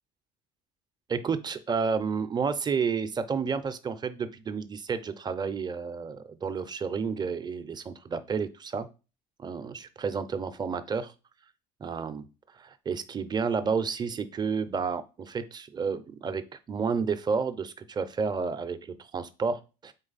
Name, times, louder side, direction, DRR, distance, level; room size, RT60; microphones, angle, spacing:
voice 1, 1.1-8.9 9.4-11.1 11.8-12.3 12.5-16.4 16.7-19.9, right 5 dB, 25° right, 12 dB, 0.5 m, -31 dB
3.8 x 3.2 x 4.0 m, 0.31 s
supercardioid pair, 95°, 17 cm